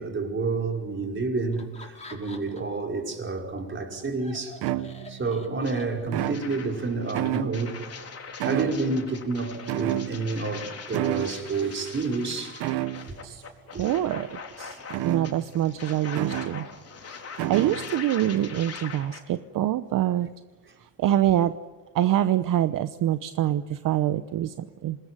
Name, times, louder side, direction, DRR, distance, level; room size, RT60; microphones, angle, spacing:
voice 1, 0.0-4.6 5.1-7.8 8.4-12.7 13.7-13.9, right 3 dB, 30° right, 5.3 m, -29 dB
Laughter, 1.5-2.8 3.2-6.4, left 2 dB, 20° left, 5.6 m, -47 dB
sound 1, 3.9-4.0 4.6-5.3 6.1-6.8 7.1-7.9 8.4-9.2 9.7-10.5 10.9-11.4 12.6-13.2 14.9-15.6 16.2-16.7 17.4-18.0, right 15 dB, 75° right, 1.2 m, -30 dB
sound 2, 5.6-5.7 6.2-19.2, left 5 dB, 40° left, 4.5 m, -42 dB
voice 2, 13.7-14.8 15.0-16.7 17.5-20.3 21.0-21.5 21.9-25.0, right 12 dB, 60° right, 1.0 m, -25 dB
27.0 x 20.5 x 10.0 m
supercardioid pair, 90°, 37 cm